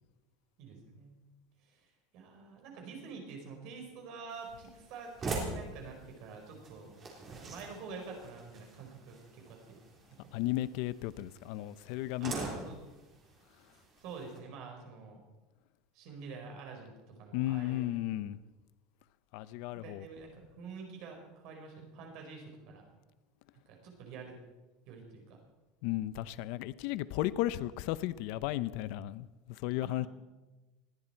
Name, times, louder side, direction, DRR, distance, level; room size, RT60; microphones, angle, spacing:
voice 1, 0.6-1.1 1.6-1.9 2.1-9.8 12.2-12.8 14.0-15.2 15.9-18.0 19.7-22.9 23.7-24.4 24.9-25.4 29.8-30.1, right 5 dB, 50° right, 2 dB, 4.8 m, -47 dB
sound 1, 4.3-14.4, right 3 dB, 25° right, 3.7 m, -44 dB
voice 2, 10.3-12.5 17.3-18.4 19.3-20.0 25.8-30.1, left 15 dB, 55° left, 17 dB, 0.6 m, -34 dB
20.5 x 15.5 x 4.5 m, 1.1 s
cardioid pair, 175°, 0 cm